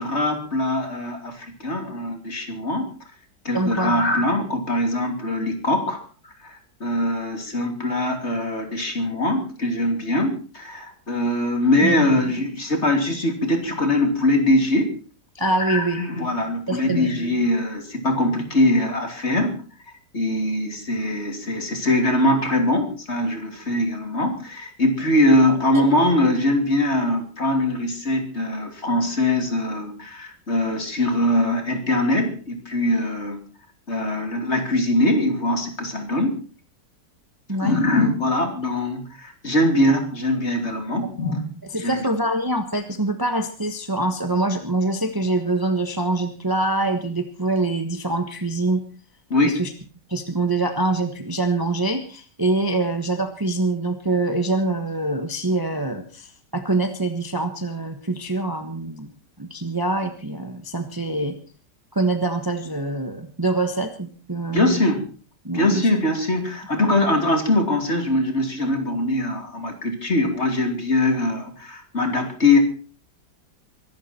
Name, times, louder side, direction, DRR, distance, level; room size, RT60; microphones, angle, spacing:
voice 1, 0.0-2.9 3.4-6.0 6.4-14.9 15.6-19.6 20.1-33.4 33.9-36.4 37.6-41.4 41.8-42.1 49.3-49.6 64.5-65.1 65.5-72.6, left 1 dB, 40° left, 5 dB, 3.2 m, -22 dB
voice 2, 3.5-3.9 11.8-11.9 15.3-16.0 16.7-17.1 25.5-25.8 37.5-37.8 41.0-41.1 41.7-48.8 49.4-49.7 50.1-59.1 59.4-61.4 61.9-64.8 65.4-65.9 66.8-66.9, right 2 dB, 15° right, 7 dB, 1.2 m, -24 dB
23.5 x 12.0 x 4.4 m, 0.38 s
omnidirectional pair, 1.9 m